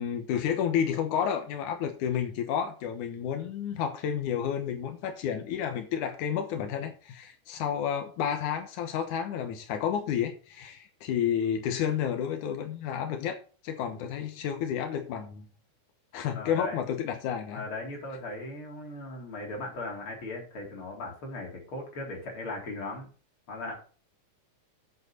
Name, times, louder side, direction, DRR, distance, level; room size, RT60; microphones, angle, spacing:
voice 1, 0.0-13.4 13.6-15.5 16.1-17.6, left 8 dB, 85° left, 2.6 m, -31 dB
voice 2, 16.3-16.8 17.5-23.1 23.5-23.8, left 2 dB, 45° left, 4.3 m, -38 dB
8.9 x 8.0 x 4.5 m
omnidirectional pair, 3.4 m